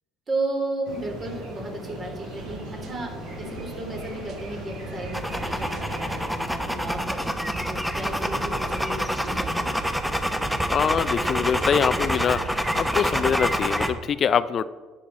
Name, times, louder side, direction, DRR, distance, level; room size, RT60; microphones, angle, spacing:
voice 1, 0.3-9.7, right 2 dB, 40° right, 1 dB, 3.3 m, -34 dB
sound 1, 0.8-6.3, right 1 dB, 75° right, 3.6 m, -38 dB
sound 2, 2.4-13.6, right 5 dB, 60° right, 1.0 m, -43 dB
sound 3, 5.1-13.9, equal, 5° right, 1.1 m, -27 dB
voice 2, 10.7-14.6, left 7 dB, 45° left, 15 dB, 0.4 m, -24 dB
11.5 x 8.4 x 4.0 m, 1.4 s
hypercardioid pair, 60°, 0 cm